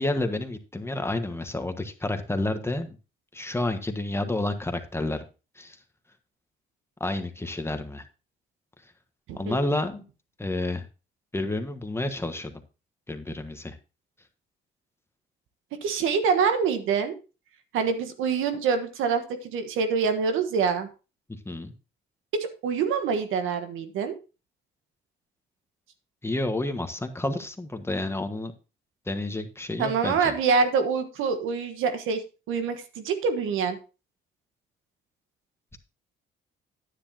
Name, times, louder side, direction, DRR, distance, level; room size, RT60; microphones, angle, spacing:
voice 1, 0.0-3.0 3.3-5.3 5.6-5.8 7.0-8.0 9.4-10.0 10.4-10.8 11.3-12.5 13.1-13.8 21.4-21.7 26.2-28.5 29.1-30.3, left 2 dB, 10° left, 7 dB, 1.4 m, -30 dB
voice 2, 9.3-9.6 15.8-17.1 17.7-20.9 22.3-24.1 29.8-33.8, right 5 dB, 85° right, 8 dB, 1.3 m, -25 dB
9.9 x 9.8 x 2.8 m, 0.31 s
cardioid pair, 90°, 20 cm